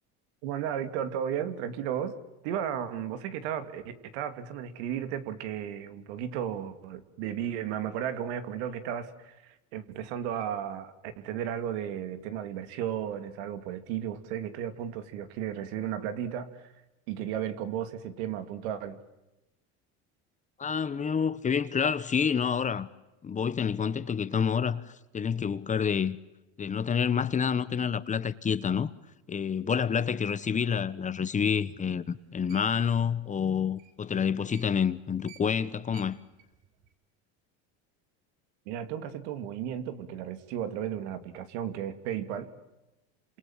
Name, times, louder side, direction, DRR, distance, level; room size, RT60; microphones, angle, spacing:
voice 1, 0.4-2.2 2.4-16.7 17.1-19.0 38.7-42.5, right 9 dB, 85° right, 2.8 m, -34 dB
voice 2, 20.6-22.9 23.2-24.8 25.1-26.2 26.6-28.9 29.3-36.2, left 7 dB, 20° left, 1.2 m, -28 dB
sound 1, 32.0-35.0 35.2-37.0, right 10 dB, 65° right, 5.7 m, -55 dB
29.5 x 27.5 x 7.5 m
cardioid pair, 130°, 33 cm